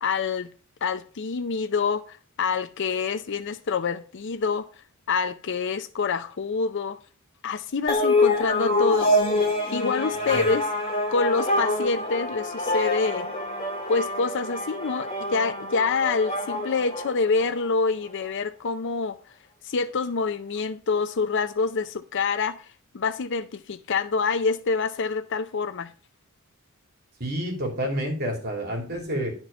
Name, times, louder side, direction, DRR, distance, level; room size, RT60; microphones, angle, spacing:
voice 1, 0.0-0.5 0.8-4.7 5.1-7.0 7.4-9.2 9.7-10.6 11.1-13.3 13.9-19.2 19.6-22.7 22.9-25.9, left 4 dB, 55° left, 0.5 m, -26 dB
sound 1, 7.9-17.7, left 2 dB, 25° left, 2.5 m, -26 dB
voice 2, 10.1-10.5 27.2-29.3, equal, 50° right, 3.0 m, -29 dB
11.0 x 4.5 x 5.4 m
head